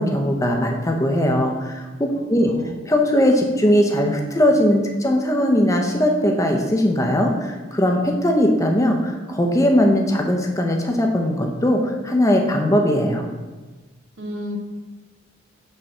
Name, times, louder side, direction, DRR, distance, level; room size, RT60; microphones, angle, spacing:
voice 1, 0.0-2.5 2.9-13.3, equal, 15° left, 2 dB, 0.7 m, -19 dB
voice 2, 2.1-2.8 14.2-14.6, left 1 dB, 70° right, 4 dB, 0.8 m, -32 dB
5.7 x 4.1 x 5.4 m, 1.2 s
head